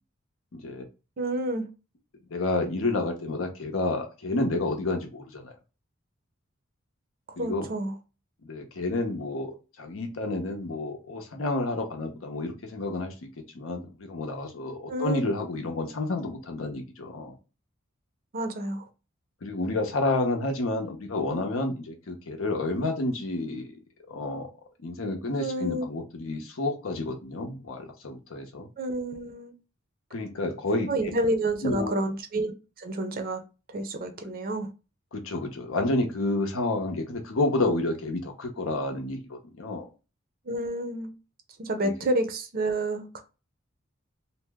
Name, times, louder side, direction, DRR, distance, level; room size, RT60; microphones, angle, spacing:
voice 1, 0.5-0.9 2.3-5.5 7.4-7.7 8.4-13.3 13.5-17.3 19.4-23.8 24.1-24.5 24.8-28.7 30.1-30.9 31.6-31.9 35.1-39.9 41.8-41.9, left 2 dB, 75° left, 0.7 m, -30 dB
voice 2, 1.2-1.7 7.4-7.9 14.9-15.2 18.3-18.9 25.4-25.8 28.8-29.5 30.9-32.5 32.8-33.4 33.7-34.7 40.5-41.1 41.6-43.2, right 1 dB, 45° right, 0.5 m, -29 dB
2.7 x 2.0 x 3.3 m
head